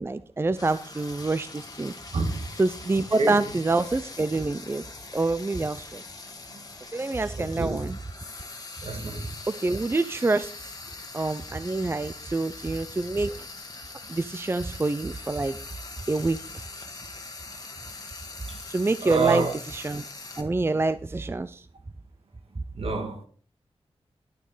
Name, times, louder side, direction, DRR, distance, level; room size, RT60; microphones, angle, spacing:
voice 1, 0.0-1.9 2.6-4.8 5.1-6.0 6.9-8.0 9.5-10.5 11.1-13.4 14.1-15.6 16.1-16.4 18.7-19.5 19.7-20.0 20.4-21.6, right 3 dB, 25° right, 0.5 m, -26 dB
Frying (food), 0.5-20.4, left 3 dB, 35° left, 1.8 m, -42 dB
voice 2, 2.1-2.5 3.2-3.5 6.5-6.6 7.3-7.8 8.8-9.4 11.2-11.4 18.5-18.6 19.0-19.6 22.7-23.3, right 4 dB, 65° right, 1.9 m, -28 dB
11.5 x 9.1 x 3.9 m
wide cardioid pair, 100°, 11 cm